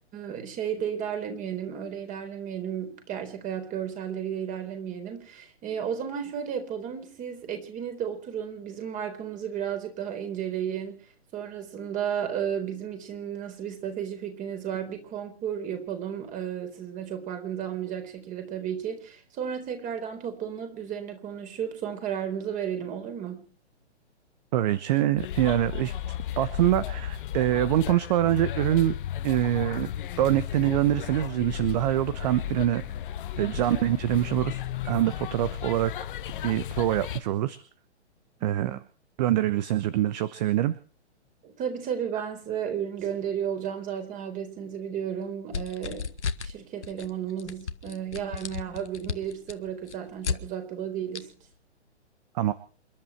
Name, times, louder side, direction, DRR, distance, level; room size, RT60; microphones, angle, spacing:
voice 1, 0.1-11.0 11.3-23.5 33.4-33.6 38.4-38.8 41.4-46.1 46.4-51.4, right 8 dB, 20° right, 6 dB, 4.2 m, -33 dB
voice 2, 24.5-26.0 26.4-29.0 29.2-29.9 30.2-32.8 33.3-35.9 36.4-37.6 38.4-38.8 39.2-40.7 52.3-52.5, right 13 dB, 35° right, 16 dB, 1.1 m, -25 dB
sound 1, 25.2-37.2, left 10 dB, 45° left, 1.3 m, -34 dB
sound 2, 45.5-46.5 46.8-47.1 47.4-50.4 51.1-51.2, left 6 dB, 80° left, 1.6 m, -33 dB
28.5 x 11.0 x 4.5 m, 0.41 s
hypercardioid pair, 130°, 35 cm